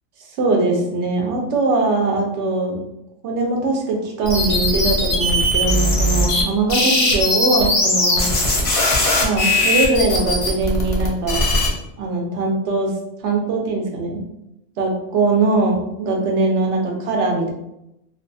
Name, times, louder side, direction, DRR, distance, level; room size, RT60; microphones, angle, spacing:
voice 1, 0.4-2.8 3.2-8.3 9.2-11.4 12.0-12.9 13.2-14.2 14.8-17.5, right 3 dB, 75° right, 1 dB, 0.9 m, -21 dB
sound 1, 4.2-6.4 6.7-11.7, left 1 dB, 40° left, 0.5 m, -19 dB
2.5 x 2.2 x 2.6 m, 0.86 s
omnidirectional pair, 1.2 m